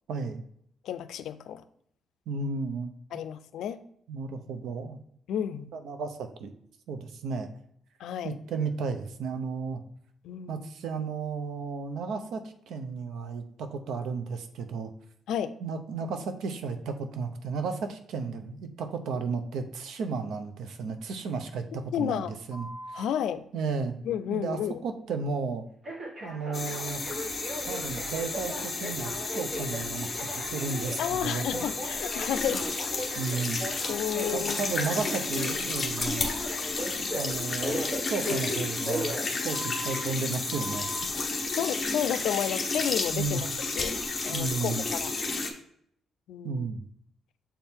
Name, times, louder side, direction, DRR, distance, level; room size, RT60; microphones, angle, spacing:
voice 1, 0.1-0.4 2.3-2.9 4.1-5.0 5.7-6.5 6.9-7.5 8.2-9.8 10.5-14.9 15.6-23.0 23.5-23.9 24.3-25.6 26.2-27.0 27.7-31.7 33.2-33.6 34.1-36.3 37.0-41.1 43.1-43.4 44.3-44.9 46.4-46.8, right 4 dB, 80° right, 8 dB, 0.7 m, -33 dB
voice 2, 0.8-1.6 3.1-3.8 5.3-5.7 8.0-8.3 10.2-10.7 15.3-15.5 21.9-22.3 22.9-23.4 24.0-24.8 31.0-32.7 33.9-34.7 41.5-44.0 44.2-45.2 46.3-46.7, left 9 dB, 80° left, 13 dB, 0.4 m, -31 dB
Telephone, 22.5-23.0 25.8-40.0 40.5-41.0, equal, 35° right, 1.7 m, -38 dB
sound 1, 26.5-45.5, left 3 dB, 20° left, 0.9 m, -32 dB
7.0 x 4.4 x 3.6 m, 0.68 s
cardioid pair, 170°, 0 cm